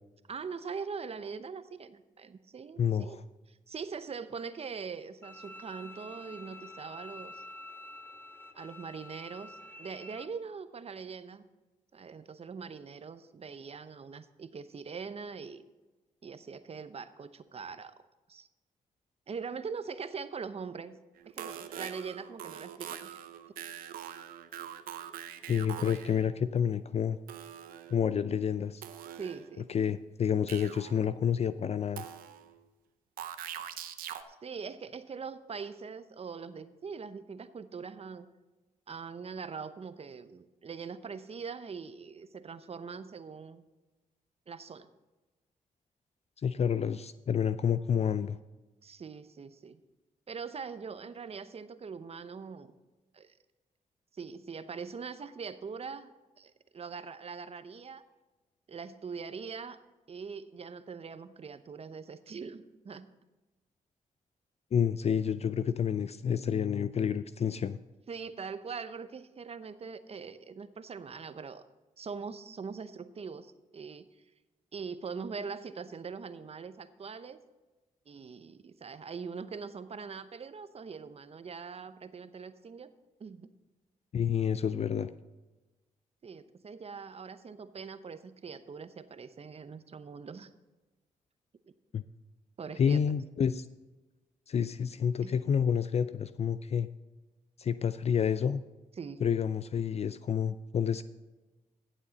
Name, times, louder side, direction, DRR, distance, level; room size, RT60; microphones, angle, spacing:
voice 1, 0.3-3.2 3.5-7.4 8.5-11.4 11.9-15.6 16.2-17.9 18.3-18.5 19.3-21.0 21.3-23.1 29.1-29.7 34.4-38.3 38.9-43.6 44.5-44.9 48.8-49.8 50.3-52.7 53.1-53.3 54.1-58.0 58.7-59.8 60.1-63.1 68.1-71.6 72.0-74.1 74.7-77.4 78.1-82.9 83.2-83.5 86.2-90.5 92.6-93.0 95.2-95.3 99.0-99.2, right 5 dB, 45° right, 12 dB, 0.8 m, -42 dB
voice 2, 2.8-3.2 25.5-27.2 27.9-28.8 29.7-32.0 46.4-48.4 64.7-67.8 84.1-85.1 91.9-92.0 92.8-93.6 94.5-96.9 97.6-98.6 99.2-101.0, left 7 dB, 45° left, 13 dB, 0.4 m, -29 dB
Bowed string instrument, 5.2-10.2, left 1 dB, 15° left, 0.8 m, -48 dB
sound 1, 21.2-26.3 27.3-28.2 28.8-29.7 30.5-31.1 32.0-32.6 33.2-34.2, right 10 dB, 85° right, 0.6 m, -43 dB
15.0 x 7.3 x 4.1 m, 1.1 s
cardioid pair, 60°, 14 cm